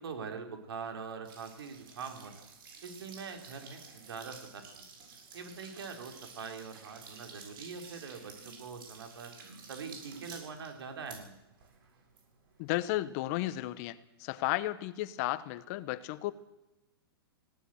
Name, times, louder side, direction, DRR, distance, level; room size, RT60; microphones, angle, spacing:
voice 1, 0.0-2.5 2.8-4.8 5.3-9.3 9.7-11.4, right 5 dB, 75° right, 5 dB, 4.4 m, -43 dB
sound 1, 1.2-12.9, right 5 dB, 60° right, 7.7 m, -52 dB
voice 2, 12.6-16.3, left 16 dB, 40° left, 16 dB, 1.1 m, -33 dB
20.0 x 17.0 x 8.0 m, 0.94 s
hypercardioid pair, 145°, 13 cm